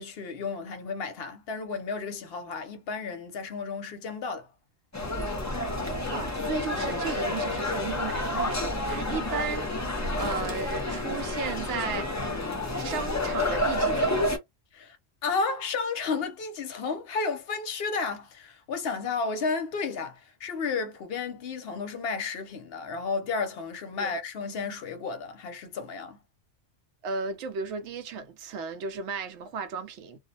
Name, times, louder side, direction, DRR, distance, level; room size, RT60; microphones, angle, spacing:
voice 1, 0.0-4.5 14.7-15.0 15.2-26.2, left 4 dB, 65° left, 0.8 m, -32 dB
sound 1, 4.9-14.4, left 1 dB, 20° left, 0.5 m, -29 dB
voice 2, 5.7-9.9 10.2-12.1 12.7-14.3 24.0-24.1 27.0-30.2, right 5 dB, 85° right, 0.9 m, -35 dB
2.4 x 2.0 x 2.6 m
omnidirectional pair, 1.1 m